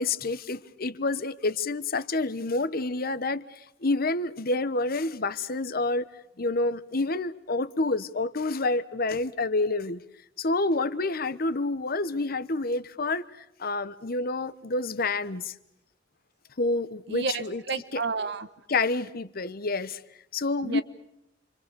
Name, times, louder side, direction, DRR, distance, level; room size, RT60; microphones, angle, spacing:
voice 1, 0.0-6.1 6.4-10.0 10.4-15.5 16.6-17.6 17.9-18.0 18.7-20.0 20.3-20.8, left 2 dB, 55° left, 1.1 m, -28 dB
voice 2, 17.1-18.5 20.6-20.8, right 4 dB, 65° right, 1.4 m, -31 dB
28.5 x 24.5 x 6.9 m
head